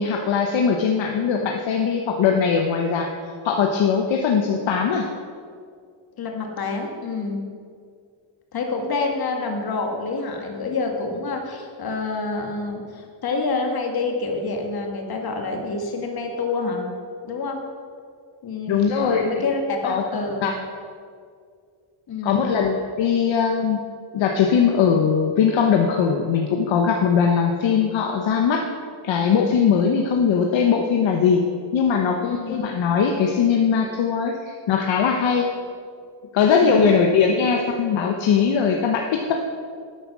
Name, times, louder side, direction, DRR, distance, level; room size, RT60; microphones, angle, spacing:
voice 1, 0.0-3.1 3.4-5.1 18.7-19.5 19.8-20.0 20.4-20.5 22.2-23.8 24.1-28.6 29.0-31.4 31.7-35.5 36.3-39.3, left 6 dB, 70° left, 2 dB, 1.1 m, -20 dB
voice 2, 6.2-7.4 8.5-16.8 17.2-17.6 18.4-20.5 22.1-22.5 32.2-32.6 36.5-36.9, left 3 dB, 50° left, 2 dB, 2.0 m, -27 dB
12.0 x 9.2 x 6.1 m, 2.2 s
cardioid pair, 160°, 48 cm